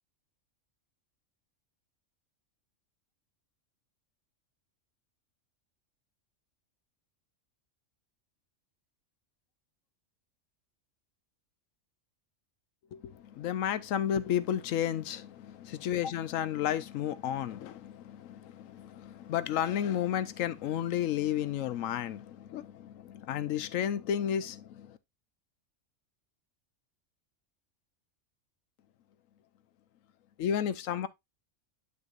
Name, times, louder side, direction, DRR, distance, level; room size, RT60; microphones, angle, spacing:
voice 1, 12.9-25.0 30.4-31.1, left 10 dB, 85° left, 1.0 m, -32 dB
9.3 x 5.7 x 2.5 m
omnidirectional pair, 1.3 m